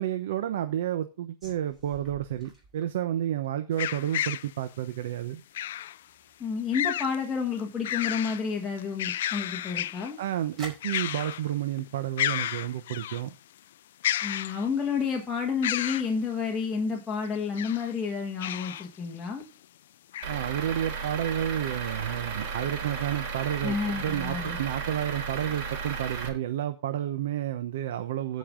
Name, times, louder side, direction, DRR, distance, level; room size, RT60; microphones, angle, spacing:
voice 1, 0.0-5.4 10.2-13.3 20.3-23.8 24.0-28.4, right 11 dB, 85° right, 0.8 m, -30 dB
sound 1, 1.4-8.0 8.3-8.5 8.7-10.1 10.6-11.4, right 2 dB, 20° right, 4.7 m, -51 dB
sound 2, 3.8-4.5 5.5-6.0 6.7-7.2 7.6-8.4 8.8-10.1 10.8-11.5 11.8-11.9 12.2-13.2 14.0-14.9 15.6-16.1 17.3-17.9 18.4-18.9 19.4-19.5 20.1-20.3, left 12 dB, 85° left, 0.4 m, -31 dB
voice 2, 6.4-10.2 14.2-19.5 23.6-24.6, left 5 dB, 10° left, 1.6 m, -30 dB
Truck / Idling, 20.2-26.3, right 5 dB, 60° right, 3.8 m, -34 dB
15.0 x 5.4 x 3.8 m
supercardioid pair, 160°, 0 cm